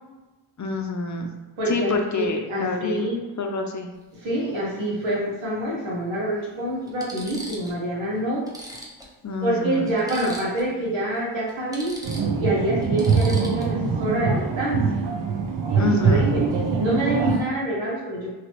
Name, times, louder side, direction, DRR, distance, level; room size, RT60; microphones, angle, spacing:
voice 1, 0.6-1.3 1.7-3.9 9.2-9.9 15.8-16.3, left 3 dB, 40° left, 3 dB, 0.6 m, -27 dB
voice 2, 1.6-3.2 4.1-8.5 9.4-12.0 12.4-14.9 15.7-16.5 16.8-18.3, right 1 dB, 85° right, -5 dB, 1.3 m, -26 dB
sound 1, 3.9-4.1 5.6-5.7 6.4-6.5 6.9-7.8 8.1-8.2 8.5-10.8 11.0-11.2 11.5-13.9 16.5-16.7 17.0-17.5, right 1 dB, 10° right, 0.9 m, -41 dB
sound 2, 12.0-17.4, right 5 dB, 65° right, 0.7 m, -23 dB
3.0 x 2.9 x 2.9 m, 1.2 s
cardioid pair, 50°, 46 cm